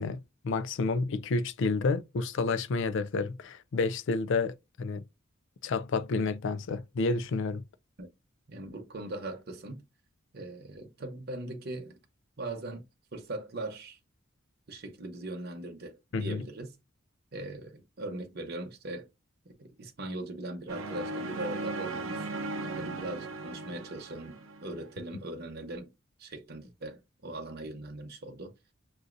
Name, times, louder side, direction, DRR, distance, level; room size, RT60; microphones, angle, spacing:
voice 1, 0.0-5.0 5.6-7.6 16.1-16.4, left 3 dB, 65° left, 0.4 m, -30 dB
voice 2, 8.5-9.8 10.3-12.0 12.4-12.9 13.1-14.0 14.7-16.7 17.3-19.1 19.4-22.3 22.6-25.9 26.2-28.5, right 2 dB, 50° right, 0.9 m, -40 dB
sound 1, 20.7-24.9, right 2 dB, 90° right, 0.8 m, -37 dB
6.1 x 2.6 x 2.5 m
head